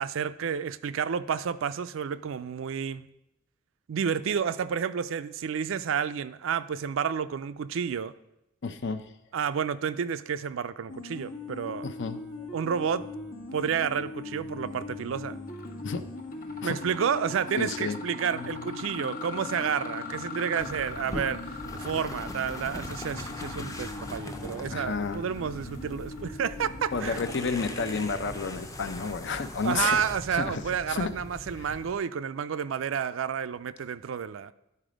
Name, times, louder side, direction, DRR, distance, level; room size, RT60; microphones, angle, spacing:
voice 1, 0.0-3.1 3.9-8.1 9.3-11.9 12.5-13.0 13.5-15.4 16.6-27.2 29.6-34.5, right 7 dB, 70° right, 14 dB, 0.4 m, -30 dB
voice 2, 8.6-9.0 11.8-12.5 15.8-16.0 16.6-16.8 17.6-18.0 24.7-25.2 26.9-30.0 30.3-30.6 30.9-31.1 31.6-31.7, left 4 dB, 60° left, 10 dB, 0.6 m, -31 dB
sound 1, 10.9-28.1, left 2 dB, 80° left, 1.3 m, -41 dB
Mechanisms, 15.5-15.8 16.2-26.7, left 5 dB, 45° left, 1.1 m, -43 dB
sound 2, 20.6-31.9, left 1 dB, 15° left, 0.6 m, -41 dB
11.0 x 4.2 x 5.0 m, 0.85 s
head